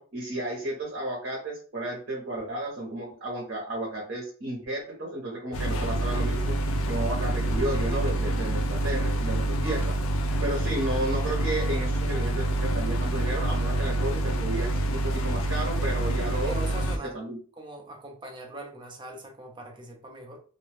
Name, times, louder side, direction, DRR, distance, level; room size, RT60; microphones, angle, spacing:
voice 1, 0.0-10.0 10.4-16.8 17.0-17.4, right 1 dB, 55° right, -3 dB, 0.9 m, -33 dB
sound 1, 5.5-17.0, right 1 dB, 75° left, 0.4 m, -27 dB
voice 2, 16.4-17.3 17.6-20.4, right 1 dB, 20° right, 1 dB, 0.6 m, -41 dB
2.5 x 2.2 x 3.1 m, 0.41 s
head